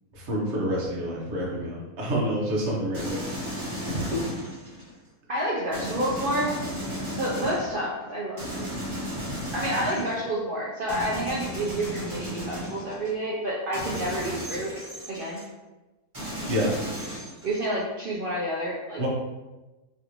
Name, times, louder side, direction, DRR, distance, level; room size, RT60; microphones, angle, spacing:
voice 1, 0.1-3.2 3.9-4.3 16.5-16.8 19.0-19.1, equal, 55° right, -4 dB, 1.1 m, -28 dB
sound 1, 2.9-4.9 5.7-7.8 8.4-10.3 10.9-13.1 13.7-15.4 16.1-17.8, equal, 20° right, 1.3 m, -34 dB
voice 2, 5.3-6.5 7.1-8.7 9.5-14.7 15.1-15.4 17.4-19.0, right 1 dB, 70° right, -5 dB, 0.5 m, -29 dB
3.3 x 2.5 x 2.9 m, 1.1 s
omnidirectional pair, 1.6 m